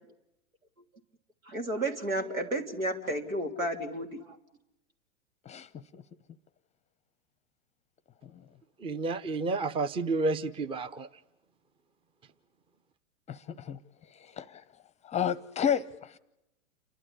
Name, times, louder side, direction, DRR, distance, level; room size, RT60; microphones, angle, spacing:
voice 1, 1.5-4.2, right 1 dB, 85° right, 3.3 m, -32 dB
voice 2, 5.4-6.0 8.2-8.5 13.3-13.8 14.1-14.6 15.0-16.2, left 8 dB, 15° left, 0.8 m, -32 dB
voice 3, 8.8-11.1, right 3 dB, 15° right, 0.8 m, -30 dB
29.5 x 12.5 x 10.0 m
figure-of-eight pair, 100°, 40 cm